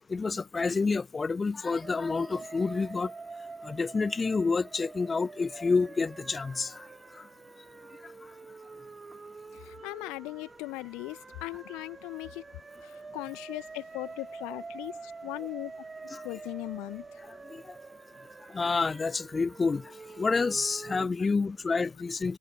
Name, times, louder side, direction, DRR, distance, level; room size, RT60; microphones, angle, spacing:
voice 1, 0.1-3.1 3.6-6.7 16.1-16.2 17.5-17.6 18.5-19.8 20.2-22.4, left 4 dB, 15° left, 0.3 m, -28 dB
sound 1, 1.8-21.1, right 4 dB, 10° right, 3.5 m, -46 dB
voice 2, 9.5-12.4 12.8-15.7 16.2-17.0, left 24 dB, 40° left, 1.9 m, -39 dB
figure-of-eight pair, 90°, 0 cm